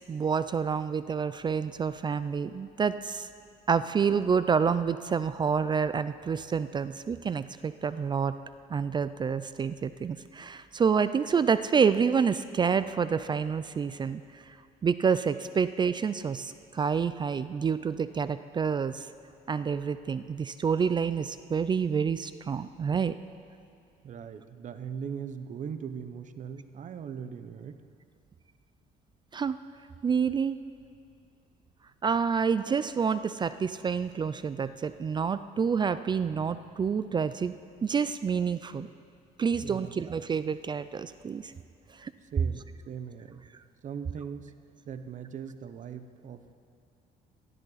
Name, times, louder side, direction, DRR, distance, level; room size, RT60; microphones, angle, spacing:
voice 1, 0.1-3.3 3.7-8.4 8.7-14.4 14.8-19.1 19.5-23.2 29.3-29.6 30.0-30.6 32.0-37.5 37.8-38.9 39.4-41.5 42.0-42.1, right 6 dB, 25° right, 13 dB, 0.4 m, -28 dB
voice 2, 24.0-27.8 39.6-39.9 42.3-43.5 43.8-44.5 44.8-46.5, right 7 dB, 45° right, 10 dB, 0.8 m, -40 dB
18.5 x 12.5 x 4.0 m, 2.4 s
cardioid pair, 110°, 17 cm